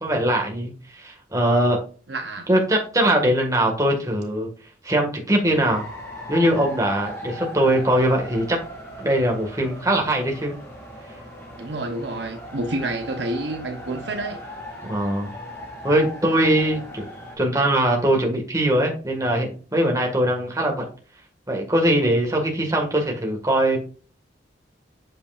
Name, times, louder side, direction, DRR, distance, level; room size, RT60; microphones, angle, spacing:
voice 1, 0.0-1.8 2.5-4.5 4.8-5.8 6.3-8.6 9.0-10.5 14.8-15.3 15.8-17.1 17.4-20.9 21.5-23.8, right 1 dB, 15° right, 1.8 m, -21 dB
voice 2, 2.1-2.5 11.6-14.4, right 2 dB, 60° right, 1.0 m, -29 dB
sound 1, 5.5-17.4, left 1 dB, 15° left, 2.3 m, -38 dB
8.0 x 6.7 x 2.5 m
head